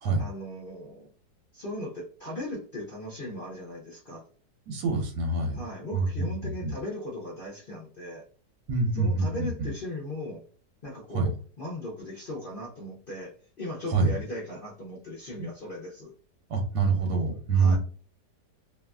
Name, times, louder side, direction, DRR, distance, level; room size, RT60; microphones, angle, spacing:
voice 1, 0.2-1.1 1.5-4.2 5.5-8.2 8.9-10.4 10.8-11.3 11.6-16.1 17.5-17.8, left 1 dB, 45° left, -4 dB, 0.7 m, -38 dB
voice 2, 4.7-5.6 5.9-6.7 8.7-9.7 11.1-11.3 13.9-14.1 15.4-15.5 16.5-17.8, right 3 dB, 85° right, 3 dB, 1.4 m, -26 dB
2.9 x 2.5 x 2.3 m, 0.40 s
omnidirectional pair, 1.8 m